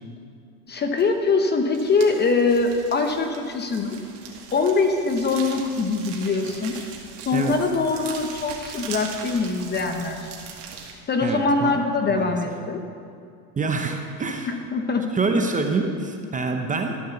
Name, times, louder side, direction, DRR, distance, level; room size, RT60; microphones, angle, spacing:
voice 1, 0.7-4.0 4.5-6.8 7.2-10.3 11.1-12.8 14.5-15.2, left 4 dB, 20° left, 5 dB, 0.9 m, -23 dB
sound 1, 1.0-1.3 1.5-10.9, right 6 dB, 60° right, 2.3 m, -40 dB
voice 2, 11.2-11.8 12.1-12.4 13.6-14.6 15.1-17.0, right 3 dB, 15° right, 4 dB, 0.9 m, -26 dB
13.0 x 8.6 x 7.0 m, 2.4 s
supercardioid pair, 135°, 45 cm